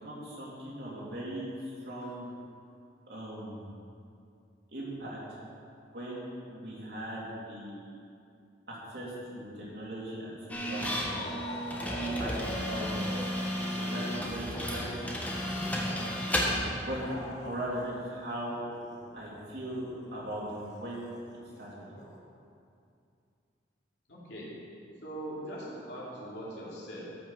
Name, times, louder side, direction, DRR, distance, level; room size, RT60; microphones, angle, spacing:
voice 1, 0.0-2.3 3.1-3.8 4.7-5.2 5.9-8.0 8.7-11.2 12.2-13.1 13.7-15.0 16.5-17.1 17.4-18.6 19.1-21.1 21.6-21.8, right 1 dB, 65° right, -6 dB, 3.1 m, -39 dB
sound 1, 10.5-16.6, equal, 10° left, 1.2 m, -33 dB
sound 2, 10.6-18.0 18.3-22.2, left 1 dB, 40° left, 1.3 m, -45 dB
voice 2, 24.1-24.5 25.0-27.0, right 1 dB, 70° left, -6 dB, 3.1 m, -41 dB
14.0 x 6.1 x 5.8 m, 2.5 s
head